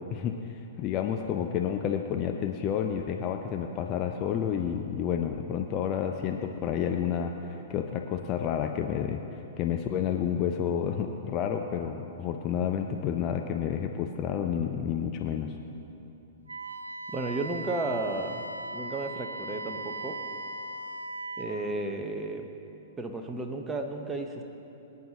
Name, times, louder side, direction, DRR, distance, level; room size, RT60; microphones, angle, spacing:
voice 1, 0.1-15.6, left 8 dB, 30° left, 4 dB, 0.6 m, -30 dB
Wind instrument woodwind instrument, 16.5-21.5, right 2 dB, 80° right, 0.6 m, -38 dB
voice 2, 17.1-18.4 18.7-20.2 21.4-22.5 23.0-24.4, right 2 dB, 10° right, 3 dB, 1.0 m, -33 dB
23.0 x 9.3 x 2.9 m, 2.9 s
figure-of-eight pair, 105°, 0 cm